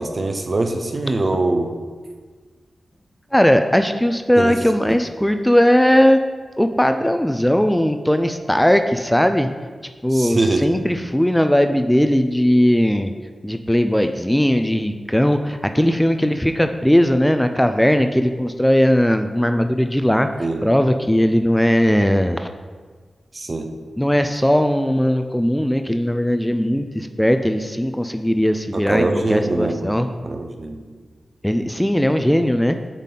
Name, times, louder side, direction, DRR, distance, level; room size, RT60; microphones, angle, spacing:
voice 1, 0.0-1.7 4.4-4.6 4.9-5.0 10.1-10.7 20.4-20.6 23.3-23.7 28.7-30.0 30.2-30.8, right 2 dB, 50° right, 5 dB, 0.7 m, -23 dB
voice 2, 3.3-6.2 6.6-9.5 10.0-13.1 13.4-20.3 20.6-22.5 24.0-30.1 31.4-32.8, equal, 5° left, 7 dB, 0.4 m, -18 dB
7.1 x 4.1 x 3.8 m, 1.5 s
cardioid pair, 50°, 0 cm